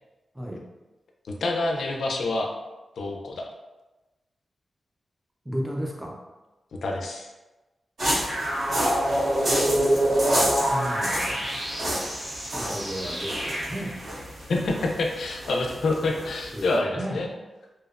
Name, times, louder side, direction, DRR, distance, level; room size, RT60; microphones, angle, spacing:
voice 1, 0.3-0.7 5.4-6.2 10.6-11.6 12.5-14.0 16.5-17.2, equal, 5° right, -2 dB, 0.4 m, -34 dB
voice 2, 1.2-2.5 3.0-3.4 6.8-7.3 14.5-17.3, left 2 dB, 85° left, 1 dB, 0.3 m, -27 dB
sound 1, 8.0-16.8, equal, 85° right, 1.5 m, -31 dB
sound 2, 8.3-14.0, right 1 dB, 50° right, 0.7 m, -26 dB
2.8 x 2.0 x 2.3 m, 1.1 s
wide cardioid pair, 175°, 0 cm